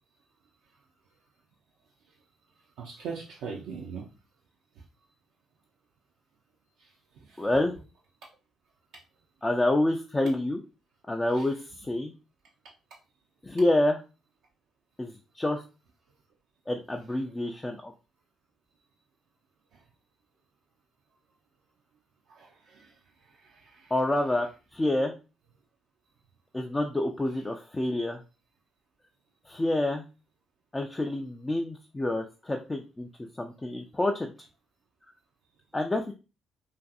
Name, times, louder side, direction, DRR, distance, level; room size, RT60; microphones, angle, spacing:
voice 1, 2.8-4.1 7.3-7.4 11.3-11.5 22.3-22.9 23.5-23.9, right 5 dB, 65° right, -2 dB, 0.3 m, -40 dB
voice 2, 7.4-7.7 9.4-10.6 11.1-12.1 13.4-14.0 15.0-15.6 16.7-17.9 23.9-24.5 24.7-25.1 26.5-28.2 29.5-30.0 30.7-33.1 33.4-34.3 35.7-36.1, left 1 dB, 20° left, 3 dB, 0.3 m, -28 dB
2.5 x 2.5 x 2.3 m, 0.31 s
figure-of-eight pair, 45°, 0 cm